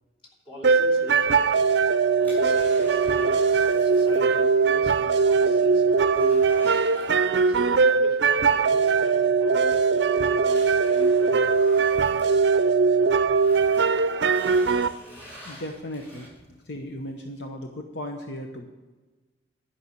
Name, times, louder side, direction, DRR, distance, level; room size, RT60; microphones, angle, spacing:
voice 1, 0.4-1.5 2.2-6.7 7.5-11.7, left 1 dB, 30° left, -4 dB, 2.9 m, -41 dB
sound 1, 0.6-14.9, right 5 dB, 65° right, 0.5 m, -21 dB
sound 2, 1.4-4.3 4.6-4.7 5.2-5.3 5.6-7.6 9.1-9.2 9.8-12.9 13.3-16.6 17.1-17.2, equal, 10° left, 4.6 m, -47 dB
voice 2, 15.4-16.3 16.6-18.7, left 1 dB, 65° left, 3 dB, 0.9 m, -36 dB
11.5 x 5.7 x 7.9 m, 1.2 s
head